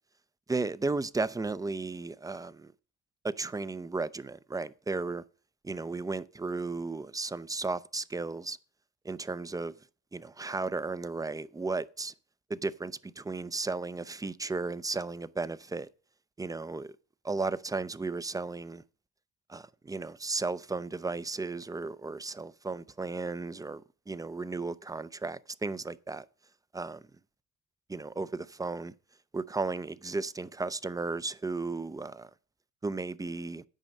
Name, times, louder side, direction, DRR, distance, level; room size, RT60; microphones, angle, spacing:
voice 1, 0.5-2.7 3.2-5.2 5.6-8.6 9.0-9.7 10.1-12.1 12.5-15.9 16.4-16.9 17.2-18.8 19.5-26.3 26.7-27.0 27.9-28.9 29.3-32.3 32.8-33.6, right 3 dB, 10° right, 0.4 m, -34 dB
9.0 x 5.3 x 6.3 m
cardioid pair, 90°, 30 cm